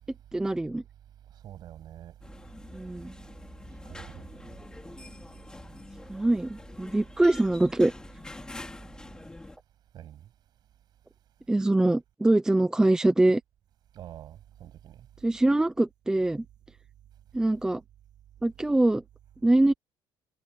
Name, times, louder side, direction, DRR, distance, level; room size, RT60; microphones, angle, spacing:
voice 1, 0.3-0.8 2.7-3.1 6.1-7.9 11.5-13.4 15.2-16.4 17.3-17.8 18.4-19.0 19.4-19.7, right 2 dB, 5° right, 0.7 m, -23 dB
voice 2, 1.4-2.1 3.8-4.6 9.9-10.3 13.9-15.1, right 11 dB, 50° right, 7.7 m, -46 dB
sound 1, 2.2-9.6, left 2 dB, 10° left, 3.4 m, -45 dB
cardioid pair, 155°, 9 cm